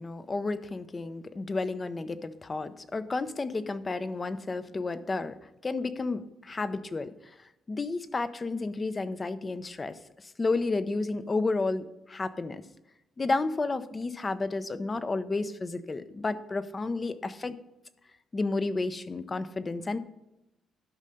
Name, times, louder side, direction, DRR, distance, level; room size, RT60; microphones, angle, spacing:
voice 1, 0.0-5.3 5.6-7.1 7.7-12.6 13.2-17.6 18.3-20.0, left 3 dB, 30° left, 12 dB, 0.7 m, -31 dB
12.0 x 5.5 x 5.3 m, 0.92 s
cardioid pair, 90°, 0 cm